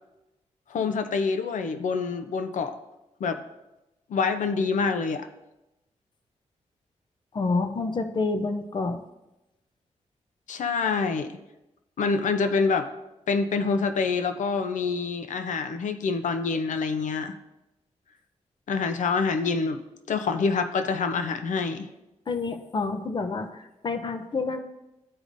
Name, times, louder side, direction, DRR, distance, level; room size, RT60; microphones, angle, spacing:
voice 1, 0.7-2.7 3.2-3.4 4.1-5.3 10.5-11.3 12.0-12.9 13.3-17.4 18.7-19.8 20.1-21.9, left 4 dB, 90° left, 8 dB, 0.6 m, -26 dB
voice 2, 7.3-9.0 22.3-24.6, left 3 dB, 40° left, 7 dB, 0.6 m, -28 dB
14.0 x 4.9 x 2.6 m, 0.94 s
wide cardioid pair, 140°, 12 cm